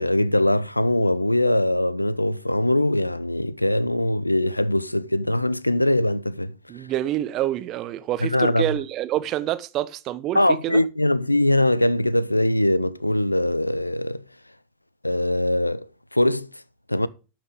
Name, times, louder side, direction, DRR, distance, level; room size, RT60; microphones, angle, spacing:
voice 1, 0.0-6.5 8.2-8.6 10.3-14.2 15.0-15.9 16.1-16.5 16.9-17.1, left 1 dB, 85° left, 0.4 m, -22 dB
voice 2, 6.7-10.8, right 13 dB, 35° right, 0.8 m, -27 dB
12.0 x 6.0 x 4.9 m
figure-of-eight pair, 90°, 0 cm